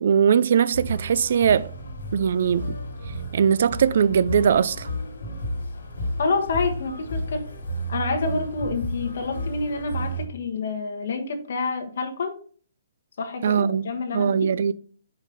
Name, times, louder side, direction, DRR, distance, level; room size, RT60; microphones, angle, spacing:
voice 1, 0.0-1.7 2.1-2.8 3.3-4.9 13.4-14.7, right 7 dB, 50° right, 0.3 m, -20 dB
sound 1, 0.7-10.3, equal, 90° left, 2.0 m, -32 dB
voice 2, 6.2-7.5 7.9-12.4 13.2-14.6, left 4 dB, 55° left, 1.3 m, -28 dB
5.3 x 5.0 x 4.0 m
hypercardioid pair, 170°, 0 cm